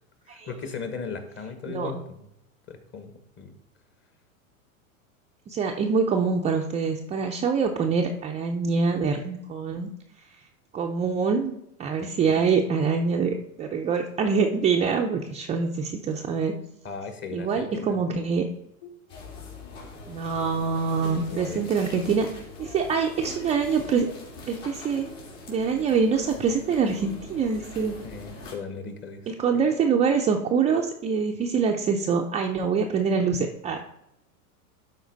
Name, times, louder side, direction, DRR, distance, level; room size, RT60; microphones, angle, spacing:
voice 1, 0.3-2.3 2.7-3.5 12.0-12.5 16.8-18.0 18.8-18.9 21.0-21.6 28.0-29.3, left 5 dB, 25° left, 8 dB, 1.2 m, -37 dB
voice 2, 5.5-9.9 10.7-11.5 11.8-16.5 17.3-18.4 20.1-24.1 24.5-25.1 25.5-28.0 29.3-33.8, right 5 dB, 15° right, 1 dB, 0.4 m, -25 dB
sound 1, 19.1-28.5, left 2 dB, 60° left, 3.3 m, -42 dB
12.0 x 4.3 x 3.9 m, 0.81 s
hypercardioid pair, 115°, 42 cm